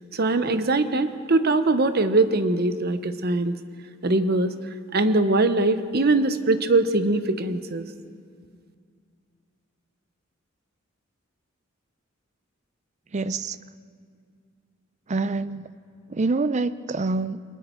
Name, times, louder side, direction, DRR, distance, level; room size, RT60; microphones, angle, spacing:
voice 1, 0.1-3.6 4.0-4.5 4.9-7.9, right 2 dB, 50° right, 10 dB, 0.9 m, -22 dB
voice 2, 13.1-13.6 15.1-15.7 16.1-17.4, right 3 dB, 35° right, 15 dB, 0.5 m, -26 dB
29.0 x 22.0 x 4.5 m, 2.2 s
head